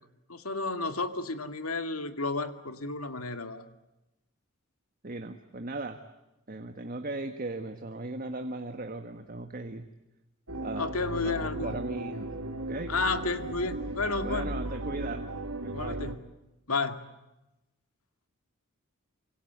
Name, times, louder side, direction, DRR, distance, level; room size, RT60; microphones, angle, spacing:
voice 1, 0.3-3.6 10.8-11.8 12.9-14.5 15.7-16.2 16.7-17.0, left 3 dB, 85° left, 8 dB, 2.3 m, -32 dB
voice 2, 5.0-6.0 6.5-9.9 10.6-10.9 11.2-12.3 12.7-12.9 14.2-15.2 15.6-16.0, right 2 dB, 40° right, 7 dB, 1.6 m, -37 dB
sound 1, 10.5-16.2, right 1 dB, 85° right, 2.2 m, -36 dB
28.0 x 25.5 x 8.2 m, 0.97 s
head